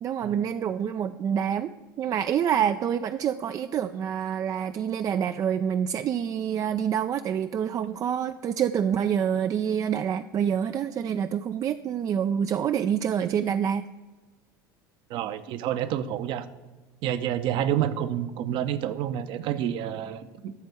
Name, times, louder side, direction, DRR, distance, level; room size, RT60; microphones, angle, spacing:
voice 1, 0.0-13.8, right 8 dB, 30° right, 10 dB, 0.4 m, -27 dB
voice 2, 15.1-16.4 17.0-20.5, right 10 dB, 45° right, 12 dB, 0.8 m, -28 dB
13.0 x 4.4 x 8.0 m, 1.3 s
figure-of-eight pair, 75°, 11 cm